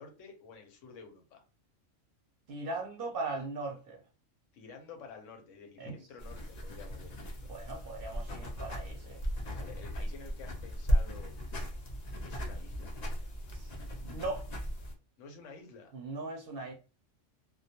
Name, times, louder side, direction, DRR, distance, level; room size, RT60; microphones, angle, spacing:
voice 1, 0.0-1.4 4.5-7.5 9.2-11.4 12.2-12.9 15.2-15.9, left 4 dB, 80° left, 1.0 m, -50 dB
voice 2, 2.5-4.0 5.8-5.9 7.5-9.2 13.5-13.7 14.0-14.5 15.9-16.7, right 3 dB, 60° right, 0.7 m, -39 dB
sound 1, 6.2-14.9, equal, 55° left, 0.4 m, -36 dB
2.2 x 2.2 x 2.7 m
omnidirectional pair, 1.3 m